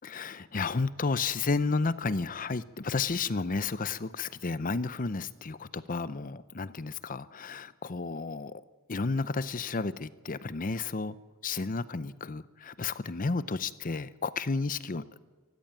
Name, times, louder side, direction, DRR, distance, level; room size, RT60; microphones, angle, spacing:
voice 1, 0.0-8.6 8.9-11.2 11.4-15.0, left 4 dB, 40° left, 16 dB, 0.6 m, -32 dB
24.5 x 14.5 x 8.8 m, 1.4 s
head